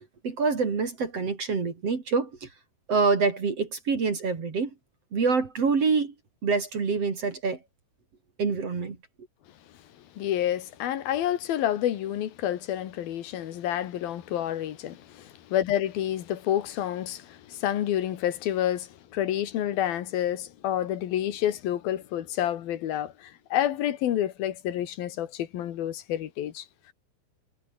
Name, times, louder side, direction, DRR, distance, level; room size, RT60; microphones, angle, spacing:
voice 1, 0.2-2.5 2.9-4.7 5.1-6.1 6.4-7.6 8.4-9.0, right 4 dB, 45° right, 3.9 m, -26 dB
voice 2, 10.2-26.7, left 11 dB, 85° left, 3.5 m, -29 dB
omnidirectional pair, 4.1 m